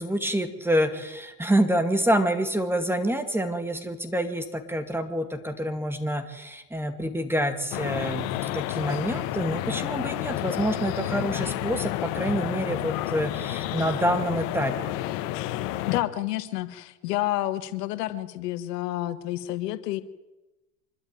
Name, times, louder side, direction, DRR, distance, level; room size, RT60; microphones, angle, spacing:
voice 1, 0.0-8.3 8.5-15.0, right 1 dB, 5° right, 7 dB, 2.4 m, -27 dB
sound 1, 7.7-16.0, left 14 dB, 65° left, 1.6 m, -30 dB
voice 2, 15.9-20.0, left 15 dB, 80° left, 12 dB, 1.6 m, -29 dB
25.0 x 12.5 x 9.3 m, 1.0 s
supercardioid pair, 105°, 47 cm